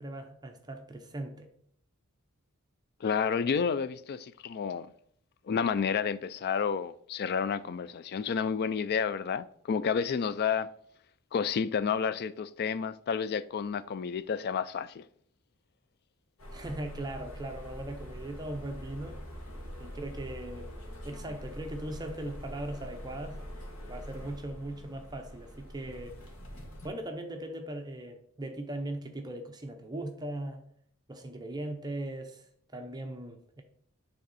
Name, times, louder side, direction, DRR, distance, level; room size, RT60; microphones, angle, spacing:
voice 1, 0.0-1.5 16.5-19.2 19.8-20.8 21.0-23.4 23.9-26.2 26.8-30.6 31.1-33.6, right 1 dB, 20° right, 0.6 m, -39 dB
voice 2, 3.0-4.9 5.5-10.7 11.3-15.0, left 6 dB, 45° left, 0.3 m, -30 dB
sound 1, 16.4-26.9, equal, 75° left, 1.8 m, -44 dB
9.3 x 3.5 x 4.1 m
head